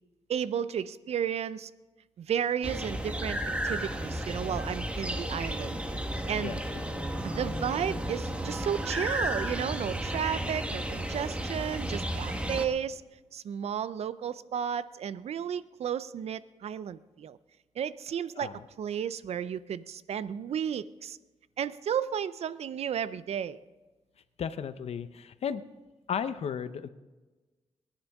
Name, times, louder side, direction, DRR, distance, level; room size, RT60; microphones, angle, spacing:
voice 1, 0.3-1.7 2.2-5.8 6.3-6.6 7.2-13.0 13.3-17.4 17.8-21.2 21.6-23.6, right 8 dB, 75° right, 16 dB, 0.5 m, -33 dB
sound 1, 2.6-12.7, right 1 dB, 10° right, 1.3 m, -33 dB
voice 2, 24.4-25.6 26.1-26.9, left 7 dB, 70° left, 12 dB, 0.8 m, -34 dB
24.0 x 10.0 x 3.6 m, 1.2 s
cardioid pair, 85°, 11 cm